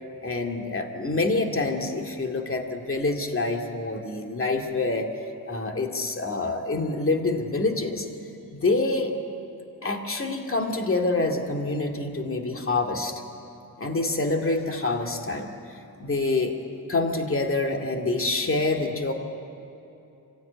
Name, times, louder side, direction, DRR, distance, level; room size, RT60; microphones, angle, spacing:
voice 1, 0.2-5.1 5.5-8.1 8.5-9.2 9.8-13.1 13.8-16.5 16.9-19.1, left 3 dB, 35° left, 3 dB, 2.3 m, -26 dB
25.0 x 16.0 x 9.3 m, 2.8 s
wide cardioid pair, 100°, 37 cm